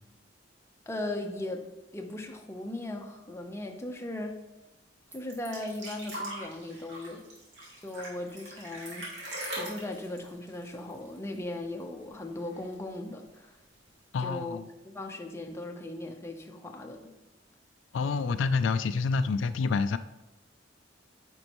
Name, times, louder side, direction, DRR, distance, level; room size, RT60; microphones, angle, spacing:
voice 1, 0.9-1.7 1.9-4.4 5.1-7.3 7.8-9.3 9.6-13.5 14.2-14.6 14.8-17.1, left 1 dB, 15° left, 2 dB, 0.7 m, -38 dB
sound 1, 5.1-11.5 11.8-11.9 12.2-12.9 13.7-13.8, right 1 dB, 70° right, 2.4 m, -41 dB
voice 2, 14.1-14.7 17.9-20.0, left 4 dB, 85° left, 12 dB, 0.4 m, -28 dB
9.4 x 5.3 x 3.0 m, 0.97 s
head